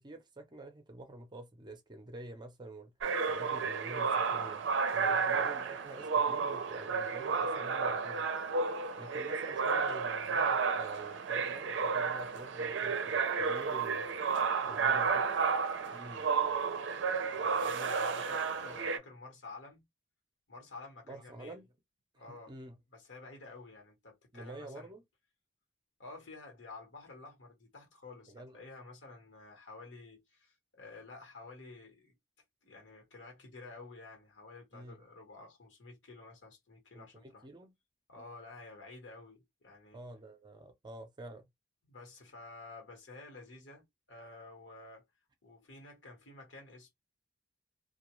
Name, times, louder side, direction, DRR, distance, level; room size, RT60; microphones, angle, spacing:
voice 1, 0.0-2.9 3.3-8.3 9.0-14.1 14.7-15.2 15.9-16.3 21.1-21.7 22.3-22.8 24.3-25.0 28.3-28.5 34.7-35.0 36.9-37.7 38.2-38.4 39.9-41.4, right 2 dB, 25° right, 0.5 m, -48 dB
sound 1, 3.0-19.0, right 5 dB, 75° right, 0.4 m, -32 dB
voice 2, 5.0-5.5 14.6-15.5 17.2-19.8 20.5-21.6 22.1-22.5 22.9-24.9 26.0-32.1 32.6-37.5 38.1-40.0 41.8-45.0 45.4-46.9, left 3 dB, 75° left, 1.2 m, -51 dB
2.3 x 2.2 x 3.0 m
head